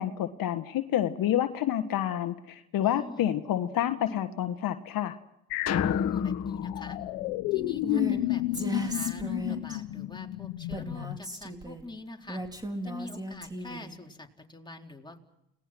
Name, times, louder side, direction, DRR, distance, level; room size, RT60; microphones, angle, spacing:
voice 1, 0.0-5.1, left 11 dB, 60° left, 8 dB, 1.5 m, -28 dB
voice 2, 2.8-3.3 5.8-7.0 7.5-12.4 12.8-15.2, left 2 dB, 10° left, 1 dB, 4.1 m, -45 dB
sound 1, 5.5-11.2, left 17 dB, 85° left, 1.0 m, -32 dB
sound 2, 5.7-8.1, left 8 dB, 40° left, 1.7 m, -30 dB
Female speech woman speaking, 7.8-8.2 8.5-9.8 10.7-11.8 12.3-13.9, right 1 dB, 10° right, 4.3 m, -36 dB
30.0 x 20.0 x 6.1 m, 0.82 s
supercardioid pair, 75°, 38 cm